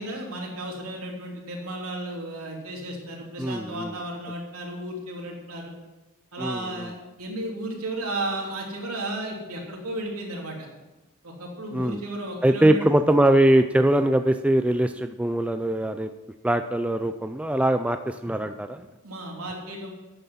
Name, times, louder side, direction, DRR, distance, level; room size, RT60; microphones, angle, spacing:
voice 1, 0.0-5.7 6.3-10.7 11.2-12.8 19.0-19.9, right 1 dB, 75° right, -1 dB, 3.4 m, -34 dB
voice 2, 3.4-3.9 6.4-6.9 11.7-12.0 12.4-16.1 16.4-18.9, right 1 dB, 5° right, 8 dB, 0.3 m, -22 dB
12.0 x 9.2 x 5.7 m, 1.1 s
head